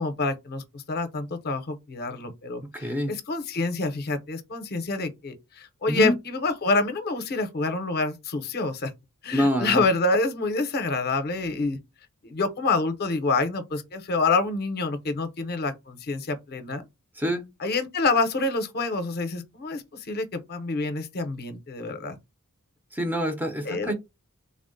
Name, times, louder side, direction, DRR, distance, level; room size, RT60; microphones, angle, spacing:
voice 1, 0.0-8.9 9.2-11.8 12.2-16.8 17.6-22.2 23.6-23.9, left 3 dB, 45° left, 0.6 m, -27 dB
voice 2, 2.7-3.1 5.9-6.2 9.3-9.8 17.2-17.5 22.9-23.9, equal, 10° right, 0.4 m, -26 dB
3.5 x 2.0 x 2.5 m
head